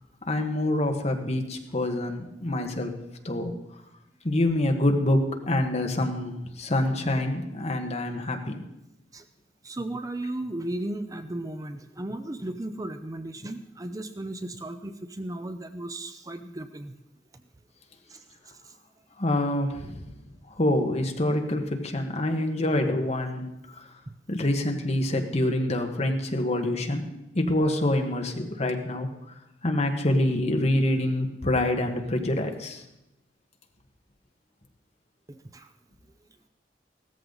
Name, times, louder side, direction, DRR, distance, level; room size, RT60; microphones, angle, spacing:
voice 1, 0.3-2.9 3.2-3.5 4.2-8.6 19.2-20.0 20.6-23.5 24.3-29.1 29.6-32.8, left 1 dB, 40° left, 4 dB, 1.4 m, -26 dB
voice 2, 9.6-16.9 17.3-17.4 18.1-18.2 18.6-18.7 24.1-24.2 35.3-35.7, right 1 dB, 20° right, 9 dB, 0.5 m, -35 dB
16.0 x 14.0 x 4.0 m, 0.91 s
head